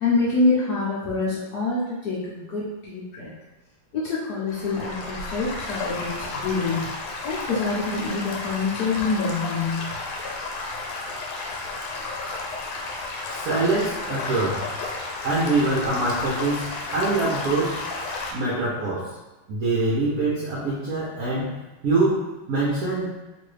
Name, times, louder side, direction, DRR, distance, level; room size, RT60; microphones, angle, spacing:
voice 1, 0.0-3.3 3.9-6.9 7.2-9.9, left 3 dB, 70° left, -7 dB, 1.0 m, -26 dB
Stream / Gurgling / Trickle dribble, 4.5-18.3, left 3 dB, 85° left, 1.5 m, -32 dB
voice 2, 13.3-14.7 15.2-17.8 18.3-19.1 19.5-23.2, right 2 dB, 75° right, -7 dB, 0.8 m, -24 dB
3.0 x 2.6 x 3.2 m, 1.1 s
omnidirectional pair, 2.3 m